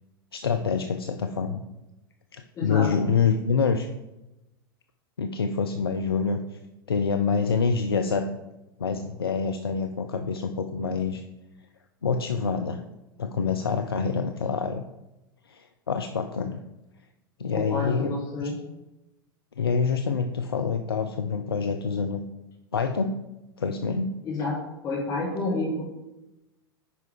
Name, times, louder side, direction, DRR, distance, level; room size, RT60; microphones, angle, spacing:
voice 1, 0.3-1.6 2.3-3.9 5.2-6.4 6.9-8.3 8.8-11.2 12.0-12.8 13.2-14.8 15.5-16.6 17.4-18.2 18.4-18.5 19.6-22.2 22.7-23.2 23.6-24.2, left 5 dB, 75° left, 5 dB, 0.5 m, -26 dB
voice 2, 2.5-2.9 17.5-18.5 24.2-24.5 24.8-25.8, left 2 dB, 25° left, -5 dB, 1.8 m, -29 dB
10.0 x 4.5 x 3.6 m, 0.96 s
figure-of-eight pair, 85°, 12 cm